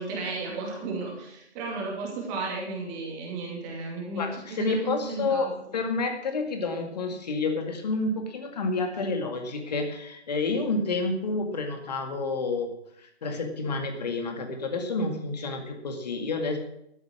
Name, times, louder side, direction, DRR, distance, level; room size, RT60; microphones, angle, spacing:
voice 1, 0.0-5.5, right 3 dB, 15° right, -1 dB, 2.6 m, -34 dB
voice 2, 4.2-12.7 13.0-16.6, left 3 dB, 35° left, 5 dB, 2.2 m, -29 dB
13.0 x 7.6 x 7.4 m, 0.76 s
figure-of-eight pair, 150°, 34 cm